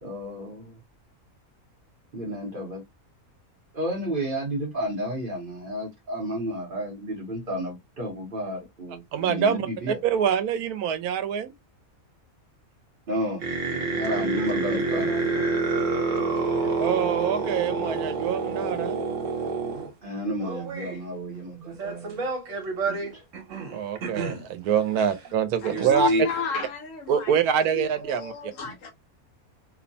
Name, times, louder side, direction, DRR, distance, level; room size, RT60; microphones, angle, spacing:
voice 1, 0.0-0.8 2.1-2.8 3.7-10.0 13.1-13.4 14.0-15.0 20.0-22.3 22.8-23.2, equal, 45° right, 0.8 m, -32 dB
voice 2, 9.1-11.5 16.8-19.0 23.7-26.1 27.1-28.5, right 8 dB, 85° right, 1.1 m, -25 dB
sound 1, 13.4-19.9 20.4-21.0 21.7-24.4 25.0-25.1 25.2-25.3 25.7-26.4, right 3 dB, 65° right, 1.2 m, -28 dB
voice 3, 14.0-15.4 15.7-15.8 16.1-16.7, left 2 dB, 30° left, 0.9 m, -40 dB
voice 4, 25.6-27.3 27.7-28.9, left 3 dB, 65° left, 1.1 m, -30 dB
2.9 x 2.1 x 2.5 m
omnidirectional pair, 1.5 m